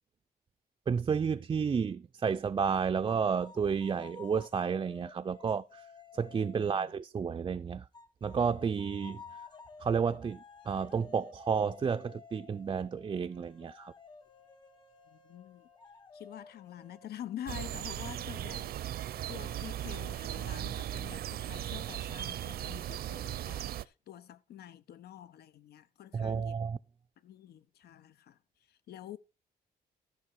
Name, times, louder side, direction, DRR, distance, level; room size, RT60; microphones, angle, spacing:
voice 1, 0.9-5.9 6.1-7.9 8.2-9.2 9.8-13.9 26.1-26.8, right 6 dB, 30° right, 0.4 m, -31 dB
sound 1, 3.0-7.0 7.9-19.2, left 5 dB, 25° left, 1.4 m, -54 dB
voice 2, 6.5-6.9 15.1-15.7 16.1-26.6 27.2-28.4 28.7-29.2, left 11 dB, 75° left, 0.9 m, -47 dB
sound 2, 8.3-21.3, left 8 dB, 45° left, 6.1 m, -68 dB
sound 3, 17.5-23.9, right 12 dB, 70° right, 0.6 m, -37 dB
14.0 x 6.2 x 4.6 m
cardioid pair, 115°, 17 cm